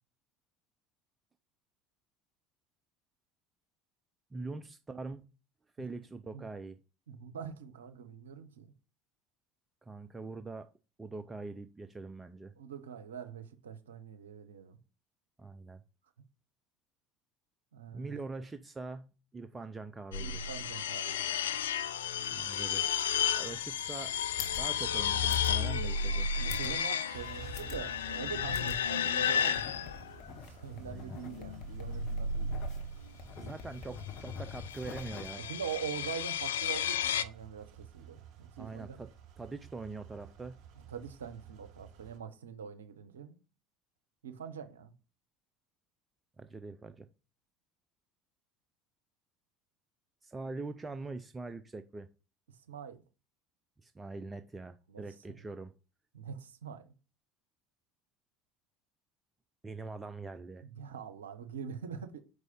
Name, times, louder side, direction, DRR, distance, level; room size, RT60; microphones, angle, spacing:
voice 1, 4.3-5.3 5.8-6.8 9.8-10.7 11.0-12.5 15.4-15.8 17.9-20.4 22.3-22.9 23.3-24.2 24.6-26.3 30.8-31.2 33.3-35.4 38.6-40.6 46.4-47.1 50.2-52.1 53.8-55.7 59.6-60.6, right 3 dB, 20° right, 0.4 m, -43 dB
voice 2, 7.1-8.7 12.6-14.8 17.7-18.1 20.2-21.6 26.4-30.0 30.3-32.5 33.4-33.6 35.4-39.0 40.8-43.4 44.2-44.9 52.7-53.0 54.9-55.0 56.1-56.9 60.6-62.2, right 7 dB, 85° right, 0.6 m, -44 dB
sound 1, 20.1-30.3 31.3-33.1 34.3-37.2, left 7 dB, 80° left, 0.3 m, -33 dB
sound 2, 24.1-35.3, left 6 dB, 55° left, 1.1 m, -46 dB
sound 3, 25.8-42.2, right 9 dB, 55° right, 1.3 m, -53 dB
5.1 x 4.7 x 4.2 m
hypercardioid pair, 70°, 0 cm